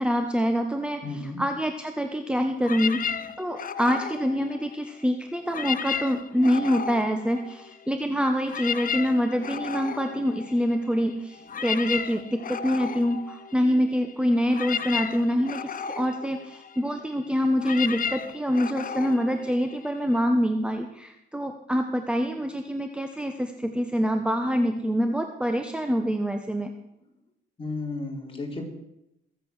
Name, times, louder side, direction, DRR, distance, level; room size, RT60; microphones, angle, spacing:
voice 1, 0.0-1.0 1.4-26.7, equal, 5° right, 5 dB, 1.1 m, -26 dB
voice 2, 1.0-1.4 27.6-28.6, left 2 dB, 25° left, 1 dB, 4.0 m, -33 dB
sound 1, 2.6-5.0 5.4-7.9 8.2-20.2, left 7 dB, 45° left, 0.9 m, -34 dB
21.5 x 7.9 x 6.4 m, 0.84 s
cardioid pair, 90°, 20 cm